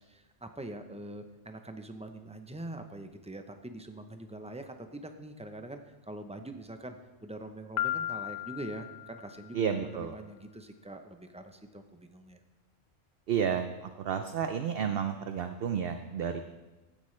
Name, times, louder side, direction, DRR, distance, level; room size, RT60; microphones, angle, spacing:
voice 1, 0.0-7.0 7.2-12.4, right 1 dB, 10° right, 6 dB, 0.4 m, -43 dB
Piano, 7.8-9.7, left 12 dB, 80° left, 1.1 m, -35 dB
voice 2, 9.5-10.1 13.3-16.4, right 8 dB, 60° right, 8 dB, 0.7 m, -31 dB
15.5 x 10.5 x 3.2 m, 1.1 s
omnidirectional pair, 1.3 m